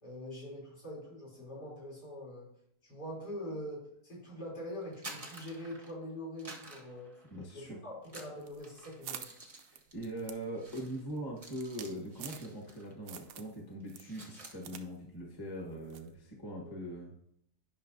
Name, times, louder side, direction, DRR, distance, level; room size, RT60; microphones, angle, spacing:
voice 1, 0.0-2.5 2.8-7.1 7.5-9.2 16.6-16.8, equal, 75° left, -6 dB, 3.9 m, -43 dB
sound 1, 4.8-6.0 6.4-7.6 8.0-13.0 13.2-13.5 13.8-14.6, right 2 dB, 30° right, 0.8 m, -51 dB
voice 2, 7.3-7.8 9.9-17.1, right 1 dB, 15° left, -2 dB, 1.2 m, -41 dB
sound 2, 8.4-12.8 13.1-13.6 13.9-14.9 15.1-15.2 15.9-16.1, right 9 dB, 70° right, 0.9 m, -48 dB
10.5 x 5.7 x 2.7 m, 0.71 s
omnidirectional pair, 1.8 m